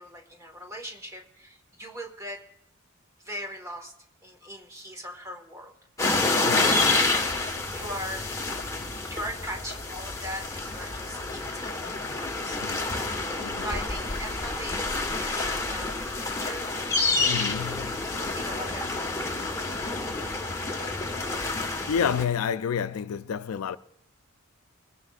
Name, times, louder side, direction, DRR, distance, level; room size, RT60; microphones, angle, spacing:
voice 1, 0.0-2.4 3.2-3.9 4.2-5.7 6.5-7.1 7.7-8.3 9.1-11.9 12.2-12.6 13.0-16.7 18.0-19.6, equal, 15° right, 1.5 m, -40 dB
sound 1, 6.0-22.2, left 3 dB, 15° left, 1.3 m, -28 dB
voice 2, 6.4-6.8 12.6-12.9 13.4-13.7 17.3-18.0 21.9-23.8, left 7 dB, 80° left, 0.4 m, -29 dB
22.0 x 15.5 x 2.4 m
head